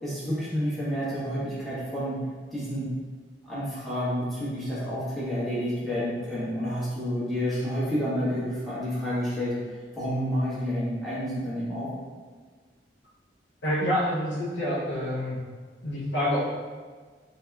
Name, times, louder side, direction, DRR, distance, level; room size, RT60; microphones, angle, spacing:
voice 1, 0.0-2.2 2.5-2.9 3.4-9.5 9.9-11.9, equal, ahead, -11 dB, 1.2 m, -29 dB
voice 2, 13.6-15.4 15.8-16.4, equal, 70° left, -10 dB, 0.8 m, -27 dB
3.9 x 2.8 x 2.3 m, 1.5 s
head